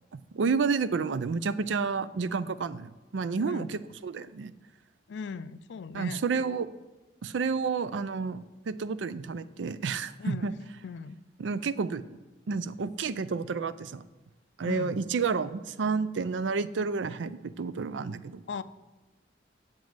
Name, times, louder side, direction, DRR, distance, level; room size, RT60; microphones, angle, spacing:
voice 1, 0.1-4.5 5.9-6.7 7.2-10.5 11.4-12.2 12.5-14.0 14.6-18.4, right 5 dB, 85° right, 15 dB, 0.4 m, -30 dB
voice 2, 3.4-3.7 5.1-6.2 10.2-10.5 10.8-11.2 14.6-15.0 18.5-18.6, left 5 dB, 70° left, 15 dB, 0.4 m, -38 dB
7.4 x 7.3 x 7.7 m, 1.1 s
head